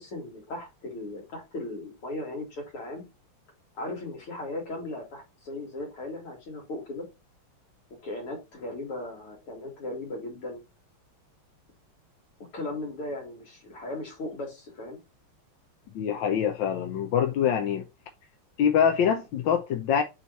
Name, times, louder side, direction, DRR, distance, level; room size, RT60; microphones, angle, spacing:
voice 1, 0.0-3.0 3.8-7.1 8.0-10.6 12.5-15.0, left 2 dB, 90° left, 3.4 m, -37 dB
voice 2, 15.9-17.9 18.6-20.0, left 8 dB, 70° left, 1.3 m, -24 dB
8.1 x 3.2 x 4.0 m
omnidirectional pair, 2.4 m